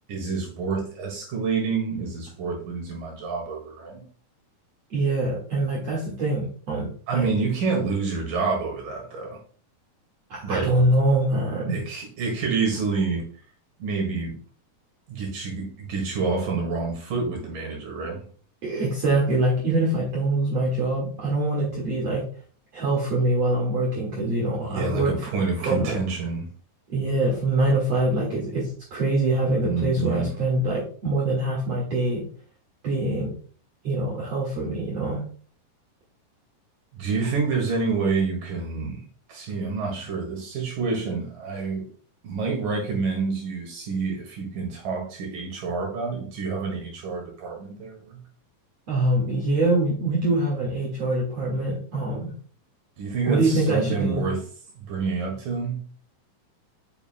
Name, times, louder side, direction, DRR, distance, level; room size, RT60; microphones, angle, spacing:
voice 1, 0.1-4.1 7.1-9.4 10.4-10.9 11.7-13.3 13.8-14.4 15.1-18.2 24.7-26.5 29.6-30.4 36.9-39.0 39.3-41.8 42.2-48.2 53.0-54.4 54.8-55.8, right 4 dB, 70° right, 3.4 m, -28 dB
voice 2, 4.9-7.3 10.3-11.8 18.6-22.2 22.7-25.1 25.7-26.0 26.9-32.2 32.8-33.3 33.8-35.2 48.9-52.3 53.2-54.2, right 2 dB, 50° right, 2.7 m, -24 dB
7.7 x 6.6 x 2.2 m
omnidirectional pair, 4.0 m